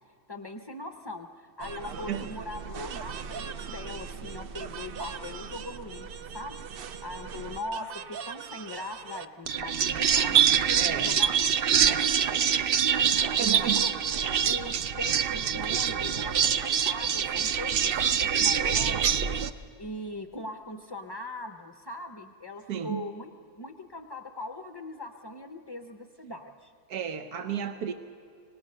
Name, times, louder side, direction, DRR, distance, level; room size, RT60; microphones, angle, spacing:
voice 1, 0.3-11.3 11.8-14.2 14.4-23.3 23.6-26.7, left 2 dB, 30° left, 6 dB, 0.5 m, -41 dB
sound 1, 1.6-19.5, right 8 dB, 55° right, 0.6 m, -27 dB
voice 2, 10.8-11.1 13.4-13.8 22.7-23.1 26.9-27.9, right 9 dB, 85° right, 8 dB, 1.4 m, -32 dB
25.5 x 18.5 x 6.6 m, 2.6 s
omnidirectional pair, 1.6 m